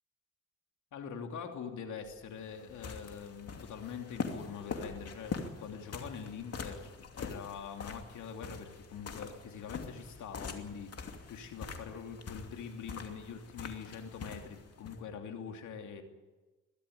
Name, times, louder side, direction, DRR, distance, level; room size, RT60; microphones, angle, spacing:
voice 1, 0.9-16.0, left 6 dB, 85° left, 4 dB, 2.8 m, -44 dB
sound 1, 2.1-15.0, left 5 dB, 55° left, 2.8 m, -44 dB
22.5 x 13.5 x 10.0 m, 1.2 s
cardioid pair, 80°, 29 cm